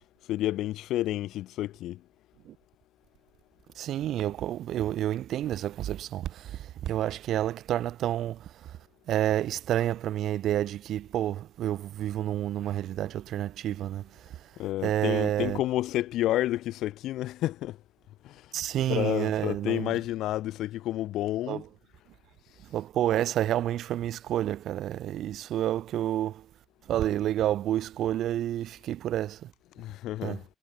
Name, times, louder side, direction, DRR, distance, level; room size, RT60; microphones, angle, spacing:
voice 1, 0.3-2.0 14.6-17.8 18.2-18.5 18.9-21.6 29.8-30.4, left 14 dB, 85° left, 0.7 m, -30 dB
voice 2, 3.8-8.8 9.1-14.5 14.8-15.6 18.5-20.0 21.5-21.6 22.7-26.5 26.9-29.5 30.2-30.4, right 12 dB, 75° right, 1.0 m, -29 dB
cardioid pair, 90°, 0 cm